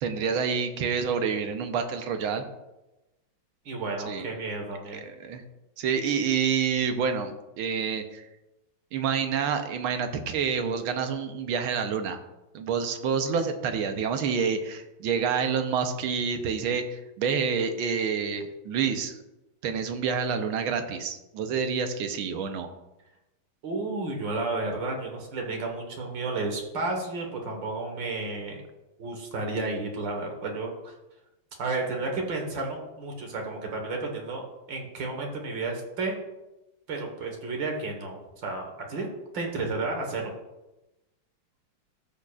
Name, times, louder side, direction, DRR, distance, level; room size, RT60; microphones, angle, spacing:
voice 1, 0.0-2.4 4.1-4.3 4.9-5.4 5.8-8.2 8.9-12.2 12.5-19.2 19.6-22.7, right 6 dB, 80° right, 7 dB, 1.6 m, -28 dB
voice 2, 3.7-5.0 23.6-28.6 29.0-30.9 31.6-36.2 36.9-39.1 39.3-40.3, right 3 dB, 65° right, 1 dB, 2.0 m, -32 dB
13.0 x 6.6 x 2.4 m, 0.98 s
omnidirectional pair, 2.2 m